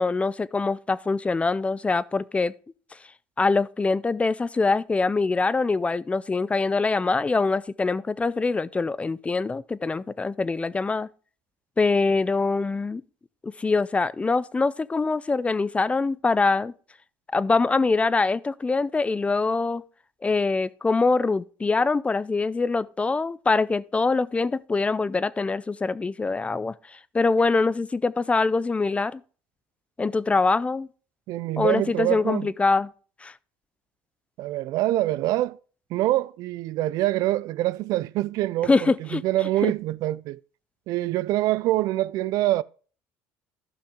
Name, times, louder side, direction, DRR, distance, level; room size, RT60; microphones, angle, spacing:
voice 1, 0.0-2.5 3.4-11.1 11.8-13.0 13.4-16.7 17.3-19.8 20.2-29.2 30.0-30.9 31.6-32.9 33.2-33.3 38.7-39.2 39.6-39.7, left 3 dB, 20° left, 0.5 m, -24 dB
voice 2, 31.3-32.5 34.4-35.6 35.9-40.4 40.9-42.6, right 16 dB, 65° right, 0.3 m, -25 dB
11.5 x 5.9 x 3.7 m
supercardioid pair, 85°, 7 cm